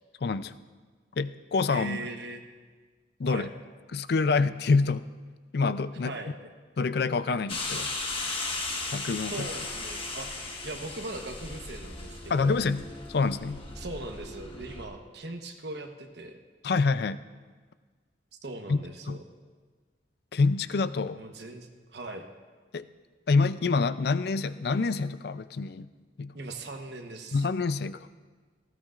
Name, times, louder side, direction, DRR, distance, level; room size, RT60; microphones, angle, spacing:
voice 1, 0.2-0.5 1.2-2.0 3.2-3.5 3.9-5.1 5.5-6.1 6.8-7.9 8.9-9.5 12.3-12.8 13.1-13.6 16.6-17.2 18.7-19.2 20.3-21.2 22.7-22.9 23.3-25.9 26.2-26.4 27.3-28.1, left 4 dB, 65° left, 14 dB, 0.4 m, -27 dB
voice 2, 1.7-2.4 3.3-3.5 6.0-6.3 9.3-12.6 13.7-16.4 18.4-19.2 21.1-22.3 26.3-27.4, right 2 dB, 70° right, 4 dB, 1.1 m, -40 dB
sound 1, 7.5-14.9, left 3 dB, 30° left, 1.4 m, -36 dB
18.5 x 15.5 x 2.5 m, 1.4 s
head